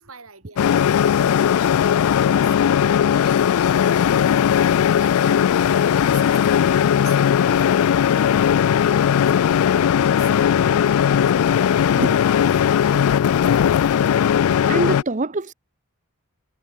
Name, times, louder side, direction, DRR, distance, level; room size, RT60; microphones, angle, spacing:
voice 1, 0.0-12.1, right 5 dB, 80° right, 7.3 m, -46 dB
sound 1, 0.6-15.0, left 8 dB, 80° left, 0.3 m, -18 dB
Vehicle / Engine, 5.2-13.2, equal, 5° right, 4.7 m, -43 dB
voice 2, 14.0-14.3 14.7-15.5, right 2 dB, 35° right, 0.9 m, -25 dB
head